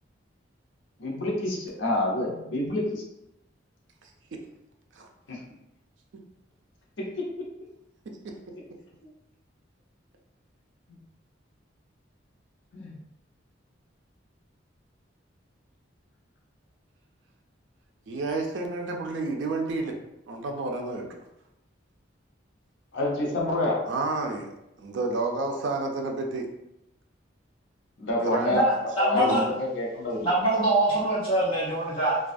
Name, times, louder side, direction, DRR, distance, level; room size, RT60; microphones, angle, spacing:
voice 1, 1.0-3.0 5.3-5.4 7.0-7.3 12.7-13.0 22.9-23.8 28.0-28.7 29.0-30.3, left 1 dB, 70° left, -2 dB, 0.6 m, -28 dB
voice 2, 18.1-20.0 20.3-21.2 23.9-24.5 24.8-26.5 28.2-28.6 29.2-29.4, right 3 dB, 70° right, 2 dB, 0.4 m, -30 dB
voice 3, 28.4-29.5 30.2-32.2, right 1 dB, 30° left, -9 dB, 1.0 m, -24 dB
2.3 x 2.2 x 2.5 m, 0.88 s
head